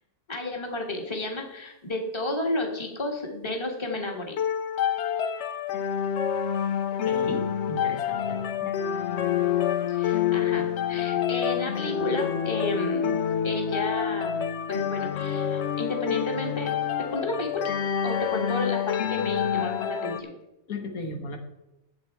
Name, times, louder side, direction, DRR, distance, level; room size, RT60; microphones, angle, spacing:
voice 1, 0.3-4.4 9.9-13.2 13.4-16.7 17.1-17.7 18.0-20.3, left 2 dB, 20° left, 1 dB, 1.7 m, -32 dB
sound 1, 4.4-20.2, left 8 dB, 60° left, 0.8 m, -27 dB
voice 2, 6.9-8.7 20.7-21.4, left 2 dB, 80° left, 3 dB, 1.7 m, -36 dB
10.5 x 7.8 x 4.5 m, 0.91 s
omnidirectional pair, 1.5 m